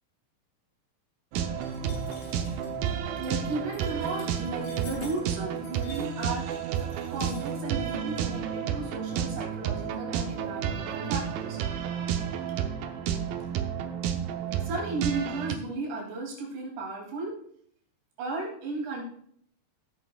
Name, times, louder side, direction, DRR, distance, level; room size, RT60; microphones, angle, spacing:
sound 1, 1.3-15.5, right 8 dB, 90° right, 2.0 m, -31 dB
sound 2, 1.6-7.9, left 4 dB, 85° left, 4.8 m, -51 dB
voice 1, 3.2-11.6 14.5-17.4 18.2-19.0, right 2 dB, 70° right, -2 dB, 4.9 m, -35 dB
16.5 x 8.1 x 2.4 m, 0.64 s
omnidirectional pair, 5.3 m